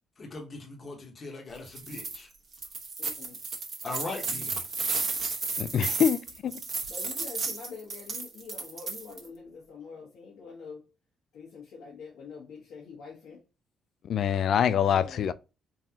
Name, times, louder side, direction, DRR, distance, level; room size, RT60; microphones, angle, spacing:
voice 1, 0.2-2.3 3.8-4.6, left 3 dB, 40° left, 1.1 m, -39 dB
sound 1, 1.6-2.2 2.5-9.3, right 4 dB, 45° right, 1.3 m, -33 dB
voice 2, 3.0-3.4 6.9-10.9 11.3-13.4 14.4-15.3, left 5 dB, 85° left, 1.3 m, -45 dB
voice 3, 5.6-6.6 14.0-15.3, left 8 dB, 65° left, 0.3 m, -25 dB
3.9 x 2.5 x 2.9 m
cardioid pair, 90°, 0 cm